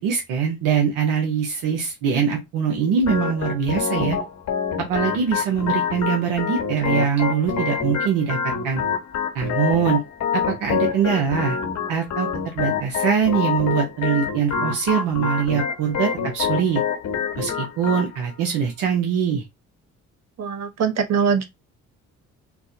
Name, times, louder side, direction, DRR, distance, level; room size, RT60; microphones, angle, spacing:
voice 1, 0.0-4.2 4.9-8.4 8.6-8.8 9.3-10.0 10.3-11.6 11.9-16.8 17.4-19.4, right 7 dB, 90° right, 1.0 m, -23 dB
Organ, 3.0-18.1, left 6 dB, 65° left, 1.0 m, -26 dB
voice 2, 20.4-21.4, right 6 dB, 55° right, 1.0 m, -22 dB
4.5 x 2.2 x 2.8 m
supercardioid pair, 70°, 32 cm